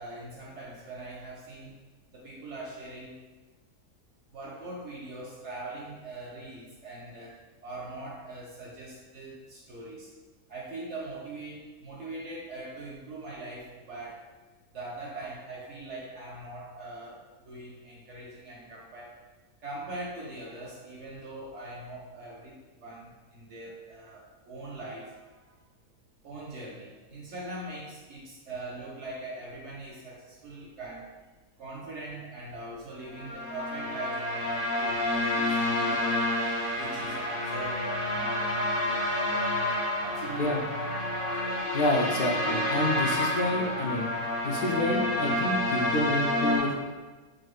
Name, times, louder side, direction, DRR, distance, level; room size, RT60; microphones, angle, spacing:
voice 1, 0.0-1.8 2.1-3.2 4.3-10.1 10.5-14.2 14.7-19.2 19.6-25.6 26.2-31.1 31.6-36.3 36.7-39.0 40.0-40.9 41.4-41.7, right 2 dB, 65° right, -3 dB, 0.7 m, -42 dB
sound 1, 33.1-46.6, left 1 dB, 45° left, 1.0 m, -29 dB
voice 2, 41.7-44.1 44.4-46.7, left 1 dB, 75° left, -1 dB, 0.5 m, -28 dB
4.1 x 2.4 x 2.4 m, 1.3 s
omnidirectional pair, 1.6 m